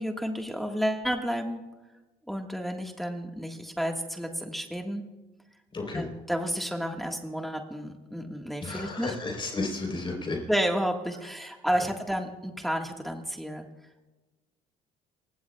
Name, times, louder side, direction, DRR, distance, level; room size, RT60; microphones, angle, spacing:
voice 1, 0.0-1.6 2.3-5.0 5.9-9.1 10.5-13.6, equal, ahead, 2 dB, 1.5 m, -31 dB
voice 2, 5.7-6.1 8.6-10.4, left 3 dB, 30° left, 1 dB, 3.7 m, -32 dB
27.0 x 16.5 x 2.3 m, 1.1 s
cardioid pair, 110°, 17 cm